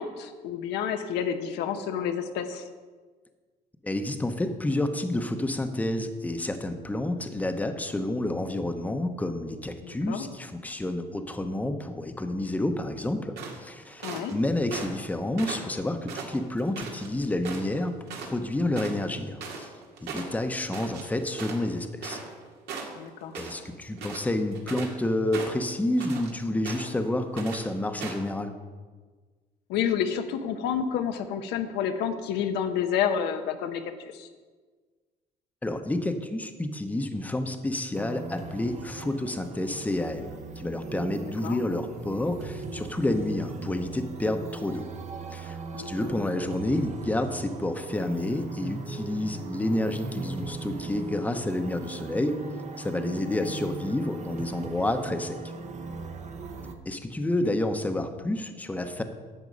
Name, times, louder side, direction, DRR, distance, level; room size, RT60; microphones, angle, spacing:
voice 1, 0.0-2.6 9.8-10.3 14.0-14.3 22.9-23.4 29.7-34.3 41.2-41.6 45.7-46.1 53.3-53.5 57.4-57.6, left 8 dB, 90° left, 7 dB, 0.9 m, -30 dB
voice 2, 3.8-19.7 20.0-22.2 23.3-28.5 35.6-44.9 45.3-52.4 52.8-55.4 56.8-59.0, left 1 dB, 10° left, 7 dB, 0.9 m, -29 dB
sound 1, 13.4-14.3 14.7-15.1 15.4-17.1 17.4-17.8 18.1-18.3 18.6-22.4 22.7-23.6 23.9-25.0 25.3-26.3 26.6-27.0 27.4-27.6 28.0-28.3, right 5 dB, 80° right, 2.0 m, -38 dB
sound 2, 37.9-56.7, right 4 dB, 45° right, 1.0 m, -39 dB
11.0 x 7.2 x 5.4 m, 1.4 s
cardioid pair, 110°, 17 cm